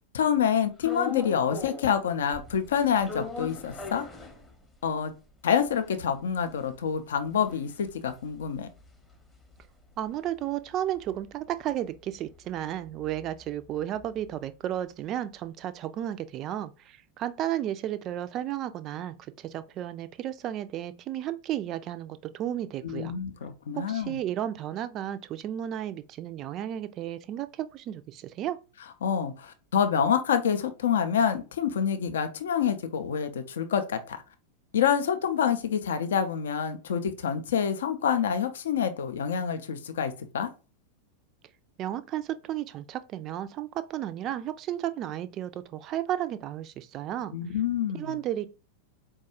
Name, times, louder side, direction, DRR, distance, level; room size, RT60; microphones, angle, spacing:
voice 1, 0.0-4.1 4.8-5.1 5.4-8.7 22.8-24.2 29.0-34.2 34.7-40.5 47.3-48.2, left 8 dB, 60° left, 0.4 m, -27 dB
sound 1, 0.8-2.0 2.3-4.9 5.3-5.4 5.6-10.1 10.4-14.5, left 5 dB, 10° left, 0.7 m, -41 dB
voice 2, 10.0-23.2 23.7-28.6 41.8-47.4 47.9-48.5, right 11 dB, 35° right, 0.3 m, -33 dB
4.4 x 2.3 x 2.9 m
figure-of-eight pair, 90°, 0 cm